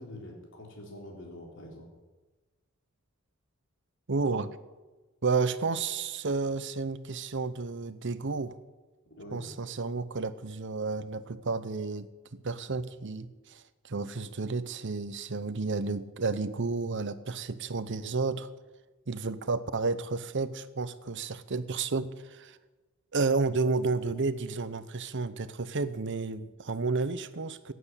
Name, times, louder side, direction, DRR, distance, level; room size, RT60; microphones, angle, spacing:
voice 1, 0.0-1.9 9.2-9.5, left 1 dB, 65° left, 0 dB, 3.9 m, -45 dB
voice 2, 4.1-4.6 5.2-8.6 9.3-18.5 19.1-22.6 23.1-27.7, right 4 dB, 60° right, 15 dB, 0.8 m, -31 dB
15.5 x 9.4 x 8.4 m, 1.2 s
head